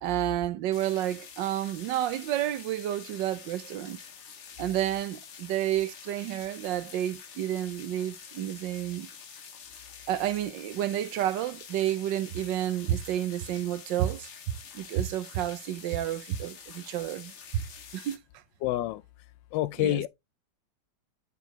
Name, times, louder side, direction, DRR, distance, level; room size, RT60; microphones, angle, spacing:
voice 1, 0.0-4.0 4.6-9.1 10.1-14.3 14.7-17.6 17.9-18.4 19.8-20.0, right 12 dB, 75° right, 1.2 m, -30 dB
sound 1, 0.7-18.2, left 6 dB, 50° left, 1.0 m, -47 dB
voice 2, 18.6-19.0 19.5-20.1, left 15 dB, 75° left, 1.2 m, -27 dB
9.0 x 4.5 x 2.8 m
omnidirectional pair, 2.2 m